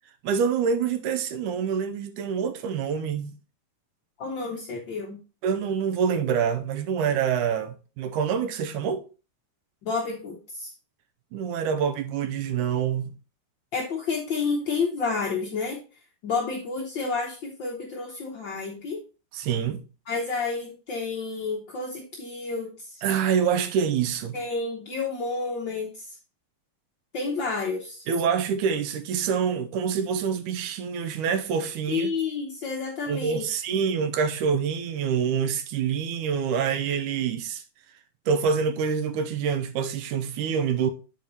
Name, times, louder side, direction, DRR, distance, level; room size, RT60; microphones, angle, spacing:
voice 1, 0.2-3.3 5.4-9.0 11.3-13.1 19.3-19.8 23.0-24.4 28.1-32.1 33.1-37.6 38.3-40.9, right 7 dB, 75° right, 2.2 m, -26 dB
voice 2, 4.2-5.2 9.8-10.7 13.7-15.8 16.2-19.0 20.1-23.0 24.3-26.2 27.1-28.0 31.9-33.5, left 4 dB, 70° left, 1.0 m, -30 dB
8.3 x 4.7 x 4.1 m
omnidirectional pair, 3.7 m